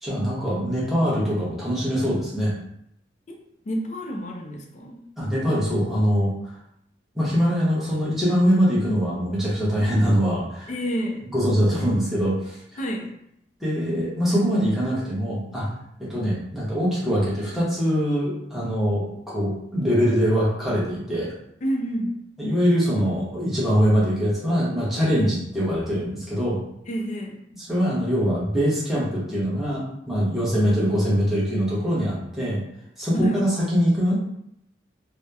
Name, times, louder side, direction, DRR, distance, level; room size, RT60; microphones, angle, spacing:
voice 1, 0.0-2.6 5.2-6.3 7.1-10.7 11.3-12.8 13.6-15.7 16.0-21.3 22.4-26.6 27.7-32.6 33.0-34.1, equal, ahead, -8 dB, 0.8 m, -23 dB
voice 2, 3.7-5.0 10.7-11.2 12.8-13.1 21.6-22.2 25.1-25.3 26.9-27.4 33.2-33.4, equal, 40° left, 2 dB, 0.4 m, -28 dB
2.7 x 2.1 x 2.3 m, 0.75 s
head